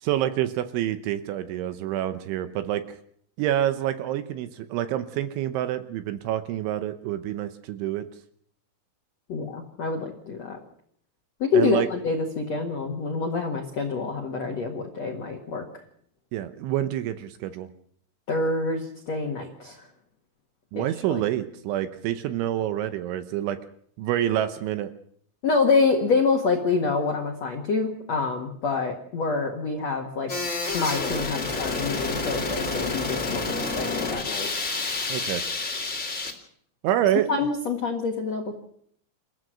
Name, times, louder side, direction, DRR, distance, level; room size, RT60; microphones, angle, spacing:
voice 1, 0.0-3.0 3.4-8.1 11.5-11.9 16.3-17.7 20.7-23.6 24.0-24.9 35.1-35.5 36.8-37.3, right 12 dB, 75° right, 10 dB, 3.0 m, -27 dB
voice 2, 9.3-10.6 11.4-15.6 18.3-19.8 20.7-21.2 25.4-30.3 30.7-34.5 37.3-38.5, left 4 dB, 65° left, 2 dB, 1.6 m, -26 dB
sound 1, 30.3-36.3, left 3 dB, 35° left, 1.1 m, -29 dB
28.5 x 14.5 x 6.3 m, 0.65 s
omnidirectional pair, 6.0 m